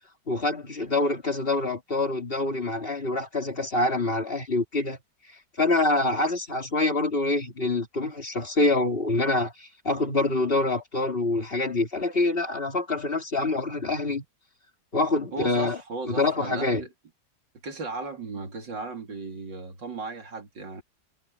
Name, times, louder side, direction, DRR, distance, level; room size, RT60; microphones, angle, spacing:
voice 1, 0.3-5.0 5.6-14.2 14.9-15.8 16.1-16.8, left 2 dB, 30° left, 3.0 m, -26 dB
voice 2, 15.3-16.9 17.6-20.8, right 3 dB, 85° right, 3.7 m, -36 dB
omnidirectional pair, 1.9 m